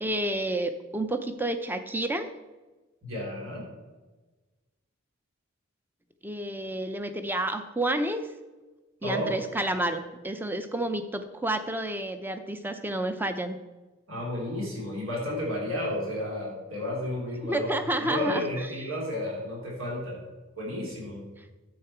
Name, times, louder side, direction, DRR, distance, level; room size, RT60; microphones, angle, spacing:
voice 1, 0.0-2.3 6.2-8.2 9.0-13.6 17.5-18.4, right 1 dB, 10° right, 8 dB, 0.6 m, -30 dB
voice 2, 3.0-3.6 9.0-9.4 14.1-17.7 18.0-20.2 20.6-21.2, left 1 dB, 75° right, -3 dB, 3.5 m, -32 dB
10.5 x 7.8 x 4.5 m, 1.2 s
head